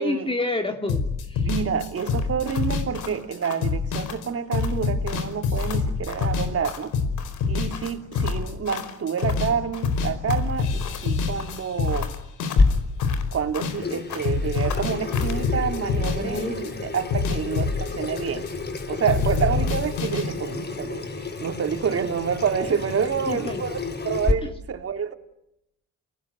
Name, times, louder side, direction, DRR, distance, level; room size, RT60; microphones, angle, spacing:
voice 1, 0.0-1.5 16.1-16.5 23.3-23.6 24.4-24.5, left 2 dB, 20° left, 5 dB, 2.8 m, -29 dB
sound 1, 0.9-9.6 9.8-14.0 14.2-18.8 19.1-20.2, left 5 dB, 90° left, 5.2 m, -26 dB
voice 2, 1.4-6.9 7.5-12.1 13.3-18.5 18.9-23.8 24.0-25.1, right 7 dB, 50° right, 6 dB, 3.2 m, -28 dB
sound 2, 2.0-4.2 4.5-4.8 5.1-6.9 7.2-9.4 9.7-11.1 11.4-13.8 14.1-15.4, left 8 dB, 75° left, 4.6 m, -39 dB
Water tap faucet / Sink (filling or washing), 12.6-24.3, left 3 dB, 35° left, 3.9 m, -30 dB
29.5 x 19.5 x 9.7 m, 0.85 s
cardioid pair, 90°, 30 cm